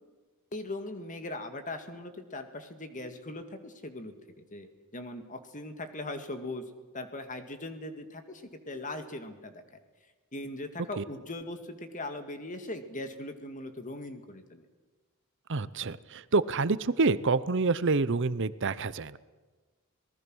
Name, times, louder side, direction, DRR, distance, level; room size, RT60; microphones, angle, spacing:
voice 1, 0.5-6.6 6.9-9.6 10.3-14.6, left 2 dB, 35° left, 7 dB, 2.1 m, -40 dB
voice 2, 15.5-19.2, right 3 dB, 60° right, 16 dB, 0.7 m, -27 dB
26.5 x 19.5 x 6.3 m, 1.3 s
head